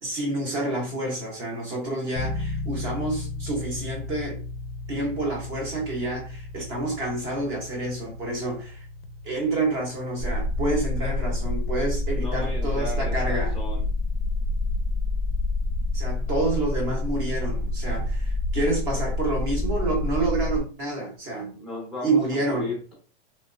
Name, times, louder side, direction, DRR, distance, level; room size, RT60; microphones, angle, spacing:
voice 1, 0.0-4.4 4.9-8.9 9.2-13.5 15.9-21.5 22.0-22.8, right 2 dB, 25° right, 0.9 m, -28 dB
sound 1, 2.2-18.9, left 3 dB, 50° left, 0.4 m, -38 dB
sound 2, 10.2-20.6, left 2 dB, 60° right, 0.7 m, -27 dB
voice 2, 12.1-13.9 21.5-22.9, left 1 dB, ahead, 0.6 m, -36 dB
3.2 x 3.1 x 2.5 m
supercardioid pair, 180°, 31 cm